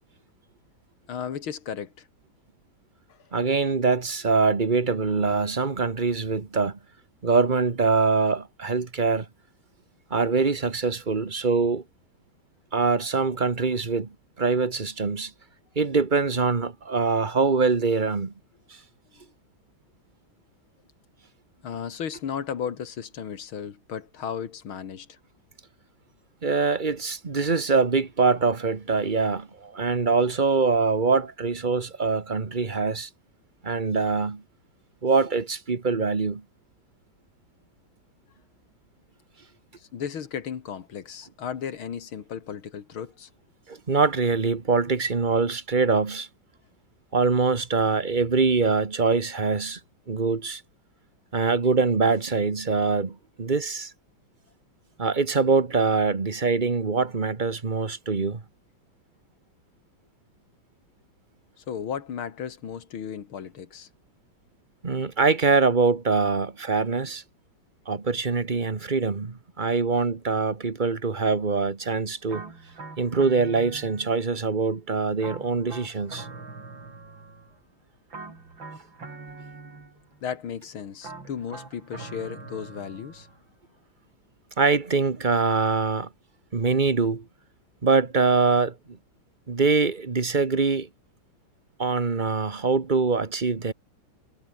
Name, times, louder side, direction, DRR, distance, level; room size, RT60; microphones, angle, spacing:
voice 1, 1.1-2.0 21.6-25.2 39.9-43.3 61.7-63.9 80.2-83.3, left 8 dB, 80° left, 2.7 m, -35 dB
voice 2, 3.3-6.8 7.2-9.3 10.1-11.8 12.7-15.3 15.7-18.3 26.4-33.1 33.6-34.4 35.0-36.4 43.7-46.3 47.1-49.8 50.1-50.6 51.3-53.9 55.0-58.4 64.8-67.2 67.9-72.5 73.0-76.3 84.6-86.1 86.5-87.3 87.8-89.0 89.5-90.9 91.8-93.7, right 4 dB, 25° right, 1.5 m, -24 dB
sound 1, 72.3-74.4 75.2-77.6 78.1-80.2 81.0-83.4, right 3 dB, 65° right, 5.5 m, -43 dB
omnidirectional pair, 2.3 m